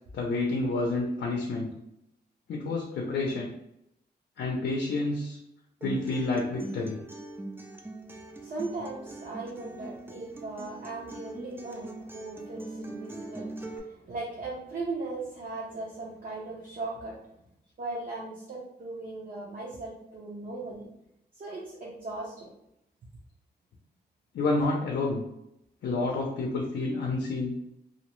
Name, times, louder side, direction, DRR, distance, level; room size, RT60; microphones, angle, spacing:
voice 1, 0.1-1.7 2.5-3.5 4.4-5.4 5.8-7.0 24.3-25.2 25.8-27.6, left 2 dB, 80° left, -1 dB, 0.5 m, -29 dB
Acoustic guitar, 5.8-13.8, right 2 dB, 10° right, 0.3 m, -42 dB
voice 2, 8.4-17.2 17.8-20.9 21.4-22.5, right 3 dB, 50° right, -5 dB, 0.6 m, -38 dB
2.5 x 2.0 x 3.0 m, 0.81 s
cardioid pair, 100°, 18 cm